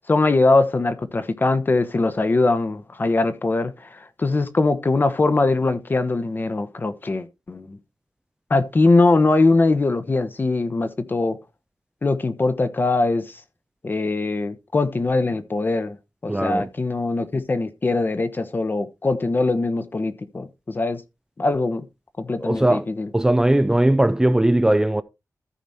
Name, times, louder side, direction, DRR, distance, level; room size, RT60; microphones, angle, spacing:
voice 1, 0.1-7.8 8.5-11.4 12.0-13.4 13.8-16.0 16.2-21.0 21.4-21.8 22.2-23.1, left 3 dB, 35° left, 1.0 m, -21 dB
voice 2, 16.3-16.7 22.4-22.8 23.1-25.0, right 1 dB, 10° right, 0.4 m, -19 dB
14.0 x 5.0 x 4.2 m
wide cardioid pair, 160°, 6 cm